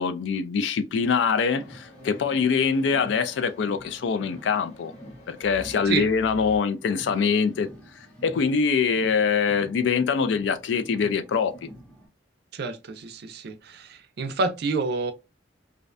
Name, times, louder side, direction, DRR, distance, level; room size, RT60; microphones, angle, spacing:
voice 1, 0.0-4.9 5.3-7.7 8.2-11.7, left 5 dB, 75° left, 0.3 m, -24 dB
Car, 0.9-12.1, equal, 5° left, 0.6 m, -47 dB
sound 1, 1.1-6.6, equal, 40° left, 0.9 m, -47 dB
voice 2, 12.5-15.1, right 3 dB, 60° right, 0.4 m, -28 dB
2.5 x 2.1 x 2.4 m
head